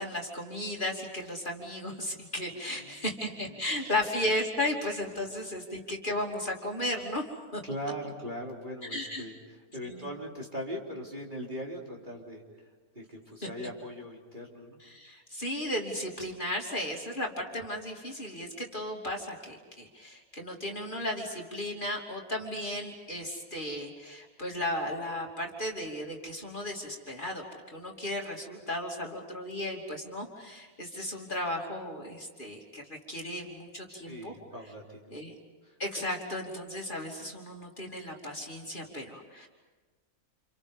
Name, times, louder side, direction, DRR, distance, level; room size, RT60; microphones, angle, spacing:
voice 1, 0.0-7.2 7.5-7.6 8.9-9.3 9.8-10.1 14.8-27.4 27.7-34.3 35.1-35.3 35.8-39.5, left 1 dB, 35° left, -1 dB, 3.1 m, -35 dB
voice 2, 2.7-3.1 3.5-3.9 7.6-9.3 9.7-12.4 12.9-14.8 33.9-35.1 35.6-35.8, equal, 30° right, -2 dB, 4.1 m, -40 dB
30.0 x 28.5 x 5.4 m, 1.3 s
omnidirectional pair, 1.5 m